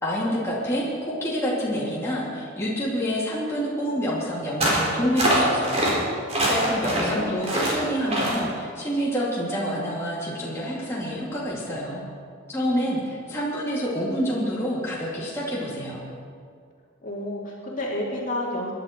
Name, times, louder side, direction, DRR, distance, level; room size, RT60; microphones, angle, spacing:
voice 1, 0.0-5.9 6.1-12.0 12.5-16.0, equal, 15° left, -7 dB, 2.6 m, -27 dB
sound 1, 4.6-4.9 5.2-5.9 6.3-7.1 7.4-7.7 8.1-8.4, right 1 dB, 30° right, 4.2 m, -23 dB
voice 2, 6.6-7.3 17.0-18.7, left 1 dB, 40° left, -3 dB, 2.8 m, -30 dB
23.0 x 11.0 x 4.5 m, 2.2 s
head